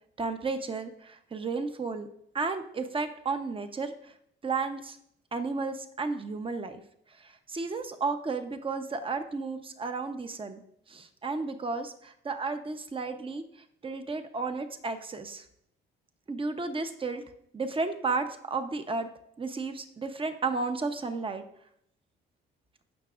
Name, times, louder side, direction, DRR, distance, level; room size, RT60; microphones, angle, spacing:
voice 1, 0.2-2.1 2.3-4.1 4.4-5.0 5.3-6.8 7.2-10.6 10.9-13.4 13.8-15.4 16.3-17.2 17.5-19.1 19.4-21.4, right 4 dB, 25° right, 8 dB, 0.9 m, -33 dB
16.0 x 6.0 x 2.5 m, 0.72 s
cardioid pair, 90°, 20 cm